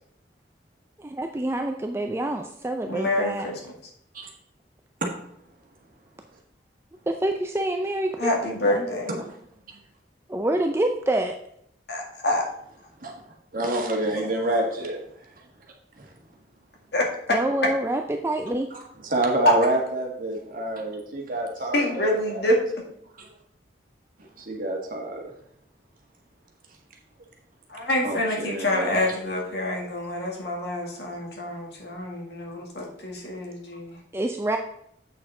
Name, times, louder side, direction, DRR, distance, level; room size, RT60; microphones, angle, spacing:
voice 1, 1.0-3.5 7.1-8.9 10.3-11.3 17.3-18.7 34.1-34.6, right 1 dB, 15° right, 4 dB, 0.4 m, -27 dB
voice 2, 2.9-3.6 8.2-9.2 11.9-12.4 16.9-17.0 21.7-22.6 27.7-34.0, left 1 dB, 65° left, -1 dB, 2.1 m, -27 dB
voice 3, 13.0-15.0 16.0-16.1 18.7-22.4 23.2-23.3 24.4-25.3 28.0-29.0, right 1 dB, 50° right, 0 dB, 1.7 m, -28 dB
7.9 x 6.6 x 3.8 m, 0.72 s
head